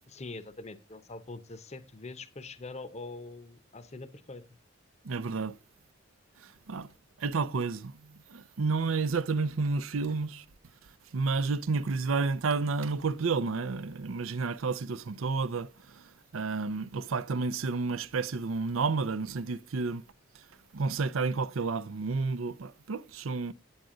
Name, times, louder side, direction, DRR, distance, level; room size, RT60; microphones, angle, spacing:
voice 1, 0.1-4.4, left 3 dB, 35° left, 0.8 m, -43 dB
voice 2, 5.0-5.6 6.4-6.9 7.2-10.4 11.1-20.0 20.7-23.5, right 4 dB, 85° right, 0.6 m, -31 dB
9.3 x 8.9 x 3.8 m
head